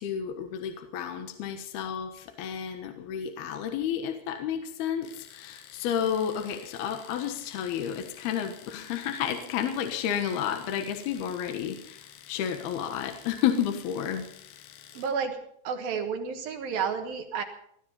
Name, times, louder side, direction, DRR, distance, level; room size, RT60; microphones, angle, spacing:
voice 1, 0.0-14.2, left 9 dB, 70° left, 6 dB, 3.0 m, -31 dB
Domestic sounds home sounds, 5.0-15.2, left 10 dB, 85° left, 3.7 m, -51 dB
voice 2, 14.9-15.4 15.6-17.4, right 6 dB, 65° right, 6 dB, 2.7 m, -31 dB
20.0 x 13.0 x 5.6 m, 0.70 s
omnidirectional pair, 5.2 m